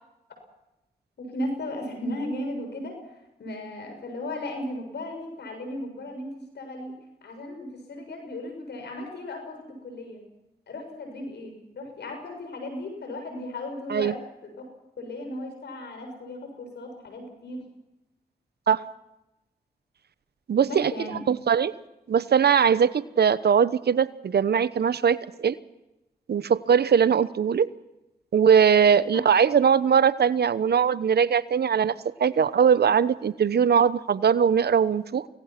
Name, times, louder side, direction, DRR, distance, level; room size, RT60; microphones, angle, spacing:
voice 1, 1.2-2.9 3.4-6.9 7.2-10.2 10.7-14.2 14.4-14.6 15.0-17.6 20.7-21.2 29.1-29.2, left 1 dB, 80° left, 4 dB, 7.0 m, -36 dB
voice 2, 20.5-20.9 21.3-21.7 22.1-25.5 26.3-27.7 28.3-31.9 32.2-35.3, right 7 dB, 70° right, 16 dB, 1.0 m, -21 dB
25.0 x 19.0 x 6.0 m, 0.93 s
supercardioid pair, 45°, 17 cm